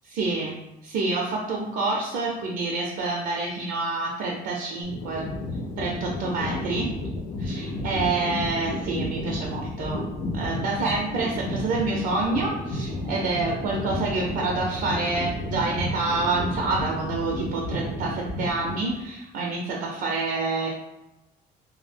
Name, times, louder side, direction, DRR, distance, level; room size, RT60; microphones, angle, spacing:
voice 1, 0.1-0.6 0.8-5.3 5.8-6.9 7.4-10.0 10.3-20.7, right 3 dB, 65° right, -2 dB, 0.5 m, -27 dB
sound 1, 4.8-19.1, left 1 dB, 90° left, 0.5 m, -32 dB
2.3 x 2.0 x 3.2 m, 0.94 s
cardioid pair, 110°, 17 cm